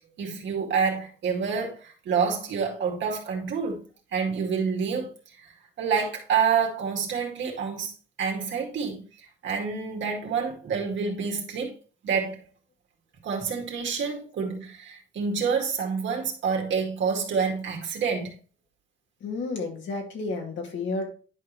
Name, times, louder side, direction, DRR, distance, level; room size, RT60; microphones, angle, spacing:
voice 1, 0.2-3.8 4.1-5.4 5.8-7.9 8.2-11.7 12.0-12.4 13.2-18.3, right 6 dB, 70° right, 2.2 m, -28 dB
voice 2, 19.2-21.1, left 3 dB, 70° left, 2.5 m, -31 dB
10.5 x 4.9 x 3.2 m
cardioid pair, 90°, 20 cm